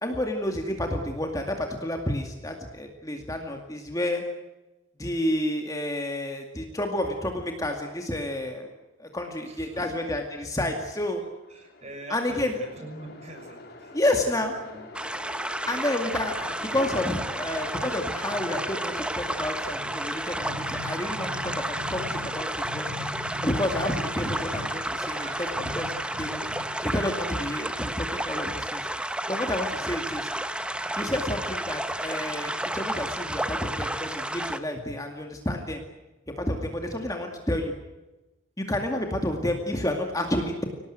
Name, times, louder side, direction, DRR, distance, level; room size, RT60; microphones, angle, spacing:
voice 1, 0.0-4.2 5.0-8.7 9.0-11.2 12.1-12.5 13.9-14.5 15.7-22.9 23.4-26.4 26.9-28.9 29.3-30.3 31.0-35.8 36.4-37.7 38.6-40.6, left 1 dB, 15° left, 3 dB, 2.2 m, -30 dB
voice 2, 9.5-9.9 11.5-14.8, right 1 dB, 30° right, 4 dB, 6.4 m, -44 dB
Train, 10.9-28.0, left 2 dB, 50° left, 3.8 m, -49 dB
sound 1, 14.9-34.6, right 1 dB, 5° right, 1.0 m, -32 dB
sound 2, 16.2-26.9, left 1 dB, 55° right, 7.1 m, -41 dB
25.0 x 18.5 x 9.3 m, 1.1 s
head